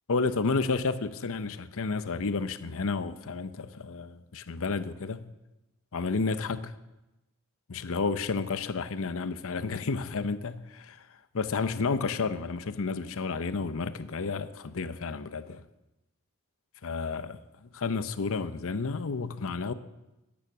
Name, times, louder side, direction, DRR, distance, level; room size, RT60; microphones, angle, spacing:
voice 1, 0.1-5.3 5.9-6.7 7.7-11.1 11.3-15.6 16.8-17.4 17.7-19.7, left 4 dB, 65° left, 0.7 m, -31 dB
13.0 x 9.6 x 6.1 m
head